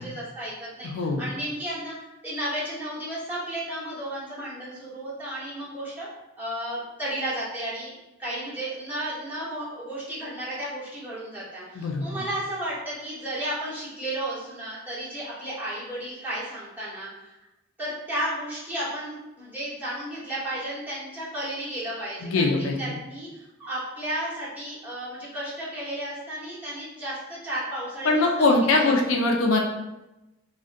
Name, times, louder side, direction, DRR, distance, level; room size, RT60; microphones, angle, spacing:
voice 1, 0.0-1.9 2.2-6.1 6.4-7.9 8.2-17.3 17.8-22.5 22.8-28.9, right 1 dB, 10° right, -10 dB, 0.9 m, -33 dB
voice 2, 0.8-1.3 11.8-12.2 22.2-22.9 28.0-29.6, left 2 dB, 75° left, 1 dB, 0.4 m, -22 dB
2.4 x 2.1 x 2.5 m, 0.98 s
head